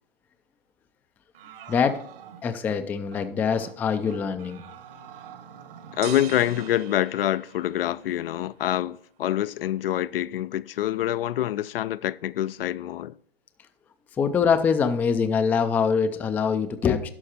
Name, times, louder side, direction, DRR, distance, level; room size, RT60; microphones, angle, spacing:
sound 1, 1.3-2.8 3.1-3.3 3.6-3.8 4.0-6.8, right 8 dB, 65° right, 1.6 m, -45 dB
voice 1, 1.7-2.0 2.4-4.6 14.2-17.1, left 6 dB, 5° left, 0.3 m, -24 dB
voice 2, 6.0-13.2, left 13 dB, 70° left, 0.5 m, -26 dB
sound 2, 6.0-8.1, right 12 dB, 40° right, 1.0 m, -40 dB
11.5 x 6.3 x 4.3 m
hypercardioid pair, 130°, 30 cm